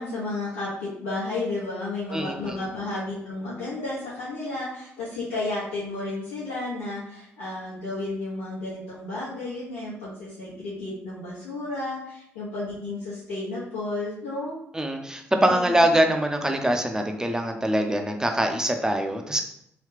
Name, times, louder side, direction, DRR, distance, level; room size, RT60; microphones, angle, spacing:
voice 1, 0.0-14.6 15.4-15.9, left 2 dB, 80° left, -11 dB, 1.0 m, -32 dB
voice 2, 2.1-2.5 14.7-19.4, right 1 dB, 10° right, 4 dB, 0.6 m, -23 dB
3.1 x 3.0 x 3.2 m, 0.74 s
figure-of-eight pair, 40°, 7 cm